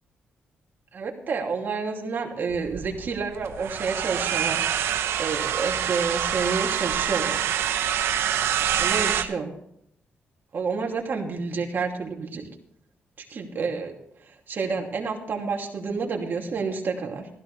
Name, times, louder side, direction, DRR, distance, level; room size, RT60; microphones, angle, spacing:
voice 1, 0.9-4.6 5.2-7.5 8.8-9.5 10.5-12.5 13.2-13.9 14.2-17.3, right 4 dB, 50° right, 1 dB, 2.7 m, -29 dB
sound 1, 2.5-9.2, right 9 dB, 90° right, 0.9 m, -26 dB
15.5 x 14.5 x 3.3 m, 0.71 s
cardioid pair, 110°, 4 cm